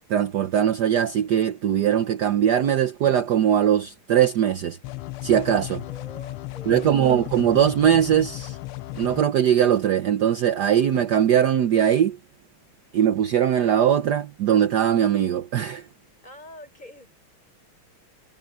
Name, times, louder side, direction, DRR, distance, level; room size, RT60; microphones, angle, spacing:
voice 1, 0.1-4.8 5.2-5.8 6.7-8.6 8.9-12.2 12.9-15.9, right 9 dB, 60° right, 1.3 m, -20 dB
sound 1, 4.8-9.2, left 20 dB, 85° left, 1.5 m, -35 dB
voice 2, 5.9-7.1 16.2-17.1, left 1 dB, 20° left, 7.8 m, -44 dB
omnidirectional pair, 2.3 m